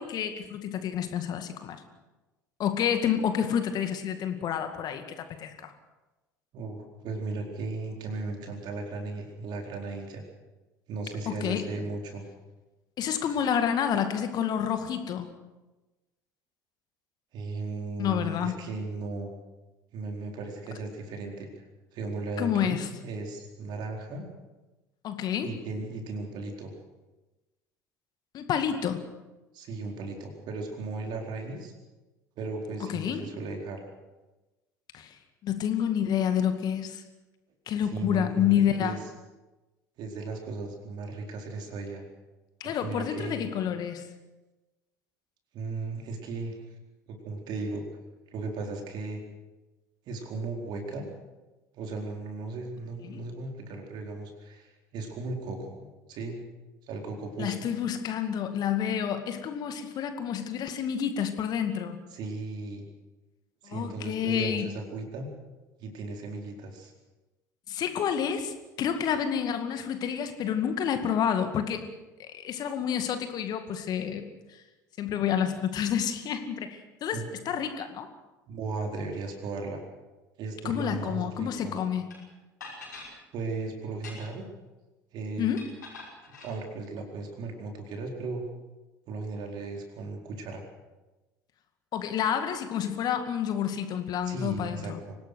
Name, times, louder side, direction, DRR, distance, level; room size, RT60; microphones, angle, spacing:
voice 1, 0.0-1.8 2.6-5.7 11.3-11.6 13.0-15.3 18.0-18.6 22.4-22.9 25.0-25.5 28.3-29.0 32.9-33.2 34.9-37.0 37.7-39.0 42.6-44.1 53.0-53.2 57.4-62.0 63.6-64.7 67.7-71.9 72.2-74.6 75.0-77.2 77.5-78.1 80.6-82.1 85.4-85.7 91.9-95.0, left 8 dB, 45° left, 8 dB, 2.1 m, -29 dB
voice 2, 6.5-10.2 10.9-12.3 17.3-19.4 19.9-21.6 21.9-24.3 25.4-26.7 29.5-31.7 32.4-33.8 37.9-39.0 40.0-42.0 42.6-43.5 45.5-46.5 47.1-47.8 48.3-49.2 50.1-51.0 51.7-56.4 56.9-57.7 62.1-62.8 63.6-65.3 65.8-66.9 77.1-77.3 78.5-79.8 80.4-81.8 83.3-84.4 85.1-85.5 86.4-88.4 89.1-90.6 94.2-95.2, right 3 dB, 50° right, 2 dB, 4.4 m, -36 dB
sound 1, 82.1-82.2 82.6-83.1 83.9-84.5 85.6-86.5, left 3 dB, 80° left, 5.8 m, -44 dB
25.5 x 18.0 x 6.5 m, 1.1 s
figure-of-eight pair, 65°, 10 cm